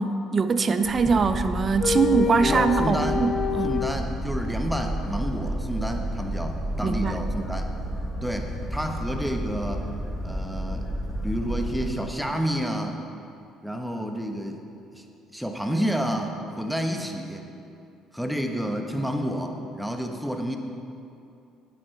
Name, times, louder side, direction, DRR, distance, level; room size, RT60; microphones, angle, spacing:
voice 1, 0.0-3.7 6.8-7.2, right 4 dB, 40° right, 11 dB, 0.6 m, -23 dB
sound 1, 0.8-0.9 1.8-3.9, left 6 dB, 50° left, 0.5 m, -27 dB
Boat Water vehicle, 0.8-11.9, right 1 dB, 20° left, 1.6 m, -31 dB
voice 2, 2.5-3.2 3.6-7.7 8.2-9.9 10.2-13.0 13.6-14.6 14.9-15.0 15.3-17.4 18.1-20.6, equal, ahead, 3 dB, 1.1 m, -30 dB
9.3 x 8.2 x 4.6 m, 2.6 s
supercardioid pair, 70°, 0 cm